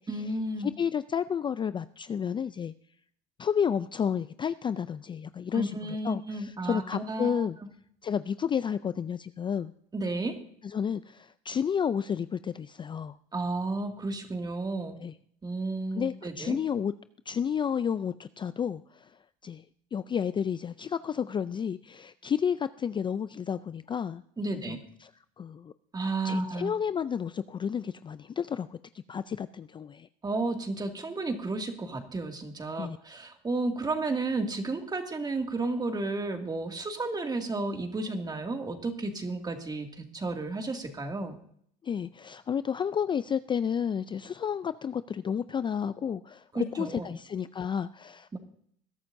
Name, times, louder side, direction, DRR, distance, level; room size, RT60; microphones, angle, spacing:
voice 1, 0.1-0.7 5.5-7.5 9.9-10.4 13.3-15.0 15.4-16.6 24.4-24.8 25.9-26.7 30.2-41.4 46.5-47.0 48.3-48.4, right 3 dB, 20° right, 4 dB, 2.2 m, -32 dB
voice 2, 0.6-2.7 3.4-5.7 6.0-7.6 8.0-9.7 10.6-13.2 15.0-15.1 16.0-16.9 17.3-19.1 19.4-19.6 19.9-24.2 24.5-25.1 25.4-25.7 26.2-28.8 29.1-30.1 32.8-33.0 41.8-48.4, left 7 dB, 25° left, 14 dB, 0.4 m, -31 dB
21.0 x 12.0 x 2.7 m, 0.65 s
supercardioid pair, 90°, 19 cm